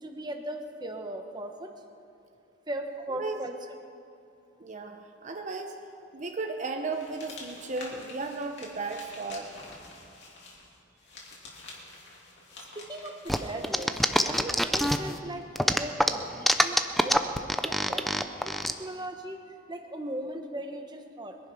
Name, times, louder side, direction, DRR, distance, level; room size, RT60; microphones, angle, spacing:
voice 1, 0.0-1.7 2.7-3.7 12.7-18.1 18.4-21.4, right 1 dB, 20° right, 5 dB, 1.2 m, -38 dB
voice 2, 4.6-5.7 6.1-9.6, right 3 dB, 40° right, 4 dB, 0.8 m, -35 dB
sound 1, 6.9-14.4, left 2 dB, 65° left, 3.1 m, -48 dB
sound 2, 13.3-15.2 15.6-18.7, equal, ahead, 0.5 m, -24 dB
22.0 x 11.0 x 5.6 m, 2.5 s
head